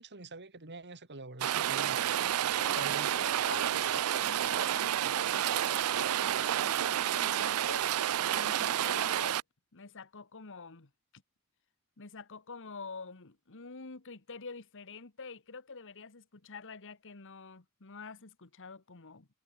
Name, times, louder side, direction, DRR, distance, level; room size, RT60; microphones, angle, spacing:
voice 1, 0.0-2.0 2.8-3.3, right 2 dB, 50° right, 3.2 m, -46 dB
Rain, 1.4-9.4, right 11 dB, 70° right, 0.4 m, -30 dB
voice 2, 2.5-9.4 9.7-11.2 12.0-19.3, left 4 dB, 60° left, 1.5 m, -47 dB
head